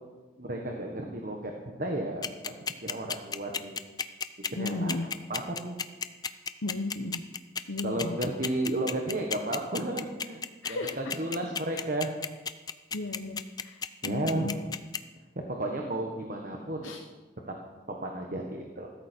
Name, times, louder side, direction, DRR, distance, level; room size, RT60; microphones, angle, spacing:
voice 1, 0.4-2.6 2.8-3.7 4.5-5.0 5.3-5.8 7.8-10.4 10.7-12.1 14.0-14.5 15.6-17.0 17.5-17.6 17.9-18.9, right 1 dB, 45° right, 1 dB, 1.4 m, -33 dB
sound 1, 2.2-15.0, left 6 dB, 20° left, 0.4 m, -32 dB
voice 2, 4.6-5.1 6.6-7.2 7.7-8.2 10.6-11.0 11.7-11.8 12.9-14.6 16.8-17.0, left 2 dB, 80° left, 3 dB, 1.0 m, -35 dB
15.5 x 13.5 x 4.5 m, 1.3 s
head